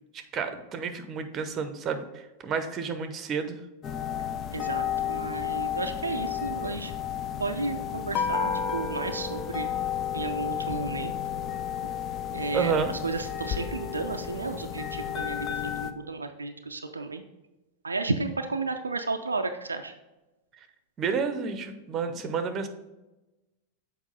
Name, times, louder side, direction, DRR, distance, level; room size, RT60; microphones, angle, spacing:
voice 1, 0.1-3.6 12.5-12.9 21.0-22.7, right 6 dB, 30° right, 9 dB, 0.8 m, -30 dB
sound 1, 3.8-15.9, left 9 dB, 30° left, 0.5 m, -32 dB
voice 2, 4.5-6.9 7.4-9.7 10.1-11.1 12.3-17.2 17.8-19.9, right 3 dB, 80° right, 6 dB, 0.4 m, -33 dB
7.3 x 4.7 x 3.9 m, 1.0 s
figure-of-eight pair, 90°, 0 cm